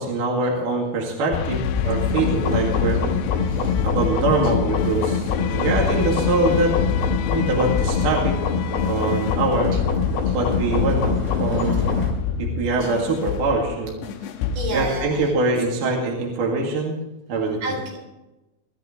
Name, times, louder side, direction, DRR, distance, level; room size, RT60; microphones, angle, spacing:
voice 1, 0.0-3.0 3.8-6.7 7.3-8.4 8.8-9.7 10.3-12.0 12.4-13.9 14.7-17.0 17.3-17.6, right 2 dB, 55° right, -1 dB, 3.5 m, -23 dB
sound 1, 1.0-12.1, left 1 dB, 10° left, 2.9 m, -41 dB
sound 2, 1.3-15.4, left 6 dB, 85° left, 3.0 m, -26 dB
sound 3, 2.1-12.1, left 6 dB, 65° left, 5.6 m, -26 dB
voice 2, 3.4-3.9 9.7-9.8 10.3-10.4 11.5-11.7 12.8-12.9 14.2-15.3 17.6-18.0, right 2 dB, 75° right, 0 dB, 6.1 m, -32 dB
20.0 x 13.5 x 3.3 m, 1.0 s
omnidirectional pair, 5.0 m